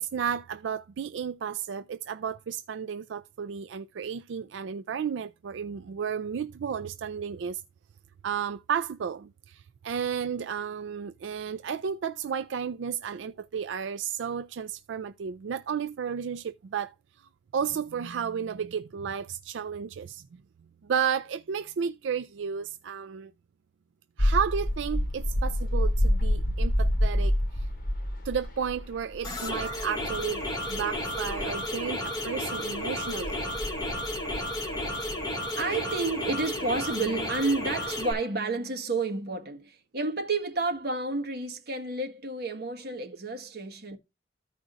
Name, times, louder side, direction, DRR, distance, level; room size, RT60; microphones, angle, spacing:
voice 1, 0.0-7.6 8.2-16.9 17.5-20.2 20.8-23.3 24.2-27.7 28.2-30.4 30.7-33.3, right 7 dB, 90° right, 0.4 m, -32 dB
sound 1, 24.2-32.2 32.8-35.3, equal, 50° left, 1.3 m, -28 dB
sound 2, 29.2-38.1, left 1 dB, 20° left, 2.2 m, -33 dB
voice 2, 35.6-44.0, right 3 dB, 60° right, 1.6 m, -30 dB
14.5 x 5.0 x 2.5 m
head